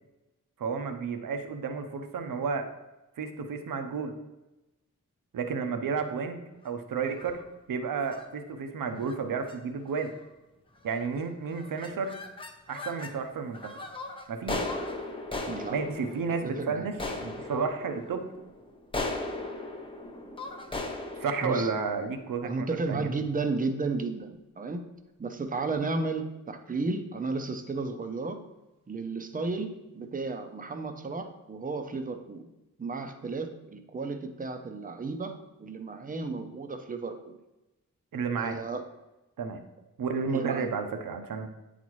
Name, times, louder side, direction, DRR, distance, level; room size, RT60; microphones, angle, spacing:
voice 1, 0.6-2.7 3.2-4.1 5.3-7.4 7.7-10.1 10.8-12.2 12.7-13.8 14.3-14.6 15.7-18.3 21.2-23.1 38.1-38.6 39.4-39.6 40.0-41.5, right 5 dB, 85° right, 6 dB, 0.8 m, -32 dB
sound 1, 7.1-7.5 8.0-8.3 9.0-9.2 9.5-9.6 9.9-10.3 10.8-11.2 11.5-13.2 13.5-22.7, left 2 dB, 15° left, 0.6 m, -38 dB
voice 2, 16.4-16.9 21.4-21.7 22.4-24.8 25.2-28.4 28.9-32.5 32.8-37.4 38.4-38.8 40.3-40.7, right 3 dB, 25° right, 6 dB, 0.6 m, -33 dB
9.4 x 4.1 x 3.0 m, 1.0 s
wide cardioid pair, 150°, 32 cm